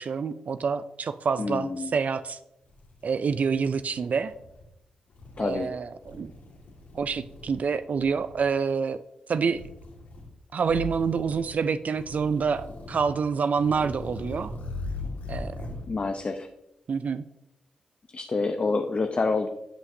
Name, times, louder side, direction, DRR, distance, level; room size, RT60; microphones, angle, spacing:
voice 1, 0.0-2.4 3.0-4.3 5.4-6.3 6.9-9.0 9.3-9.6 10.5-14.5 15.3-15.6 16.9-17.2, right 5 dB, 60° right, 13 dB, 0.3 m, -27 dB
voice 2, 1.4-2.0 5.4-5.7 15.7-16.5 18.1-19.5, left 3 dB, 45° left, 6 dB, 0.6 m, -28 dB
sound 1, 2.7-3.8 4.2-4.6 5.1-5.7 6.0-7.6 7.9-8.4 9.5-10.3 10.6-11.6 11.9-13.1 13.5-15.9, left 2 dB, 80° left, 1.8 m, -40 dB
11.0 x 5.6 x 2.7 m, 0.86 s
supercardioid pair, 45°, 3 cm